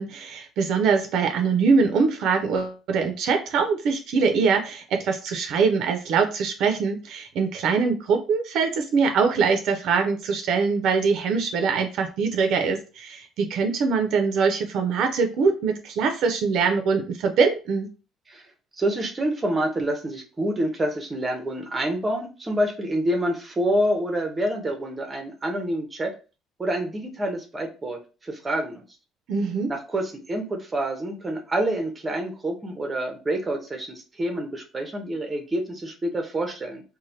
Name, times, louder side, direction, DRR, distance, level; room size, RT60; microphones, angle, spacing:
voice 1, 0.0-17.9 29.3-29.7, right 5 dB, 65° right, 5 dB, 0.4 m, -23 dB
voice 2, 18.8-26.1 26.6-28.8 29.7-36.8, right 1 dB, 15° right, 3 dB, 0.6 m, -27 dB
3.1 x 2.1 x 2.7 m, 0.33 s
cardioid pair, 150°, 0 cm